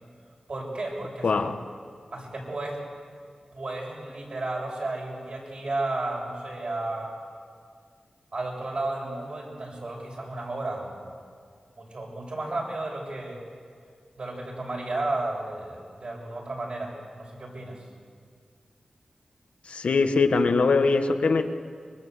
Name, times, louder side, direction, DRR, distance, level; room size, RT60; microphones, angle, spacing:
voice 1, 0.5-1.4 2.1-2.8 3.5-7.1 8.3-11.1 11.8-13.4 14.2-16.9 17.2-17.8, right 2 dB, 55° right, -1 dB, 7.2 m, -33 dB
voice 2, 1.2-1.6 19.7-21.4, left 4 dB, 75° left, 6 dB, 1.5 m, -22 dB
24.5 x 23.0 x 8.2 m, 2.1 s
wide cardioid pair, 95°, 2 cm